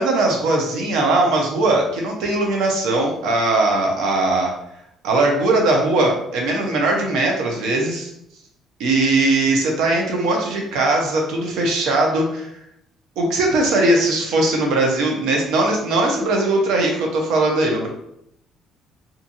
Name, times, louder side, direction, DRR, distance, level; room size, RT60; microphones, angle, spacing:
voice 1, 0.0-4.5 5.0-8.1 8.8-12.5 13.2-17.9, right 2 dB, 85° right, 0 dB, 0.7 m, -19 dB
2.8 x 2.6 x 2.6 m, 0.77 s
cardioid pair, 125°, 0 cm